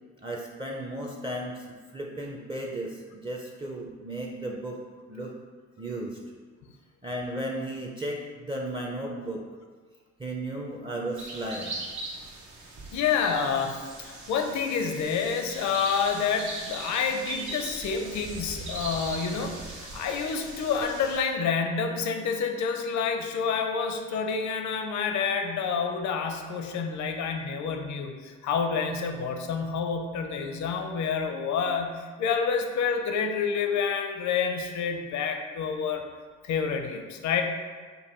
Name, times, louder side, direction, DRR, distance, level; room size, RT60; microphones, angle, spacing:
voice 1, 0.2-4.8 5.1-5.3 5.8-6.2 7.0-9.4 10.2-11.8, right 1 dB, 15° right, -1 dB, 0.5 m, -35 dB
sound 1, 11.2-21.2, right 2 dB, 75° right, 1.0 m, -39 dB
voice 2, 12.9-36.0 36.4-37.4, left 6 dB, 70° left, 4 dB, 0.6 m, -28 dB
5.3 x 2.2 x 4.3 m, 1.5 s
cardioid pair, 90°, 30 cm